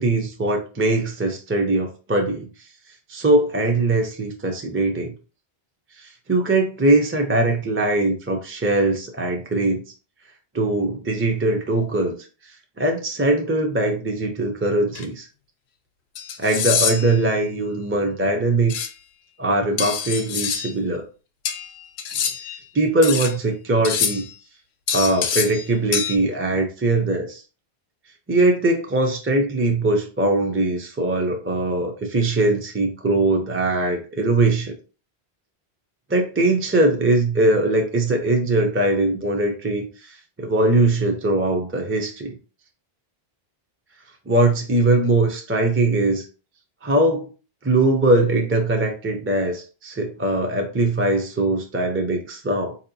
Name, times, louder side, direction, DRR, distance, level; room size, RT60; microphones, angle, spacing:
voice 1, 0.0-2.5 3.1-5.1 6.0-9.8 10.5-12.2 12.8-15.3 16.4-18.9 19.4-21.0 22.7-24.3 24.9-27.4 28.3-34.7 36.1-42.3 44.3-46.3 46.8-47.3 47.6-52.8, right 2 dB, 15° right, 2 dB, 0.5 m, -21 dB
sound 1, 15.0-15.1 16.2-17.2 18.7-18.9 19.8-20.7 21.5-22.6 23.0-23.4 23.8-24.3 24.9-25.7 25.9-26.2, left 7 dB, 85° left, 0.9 m, -25 dB
4.5 x 2.8 x 2.7 m, 0.34 s
omnidirectional pair, 1.1 m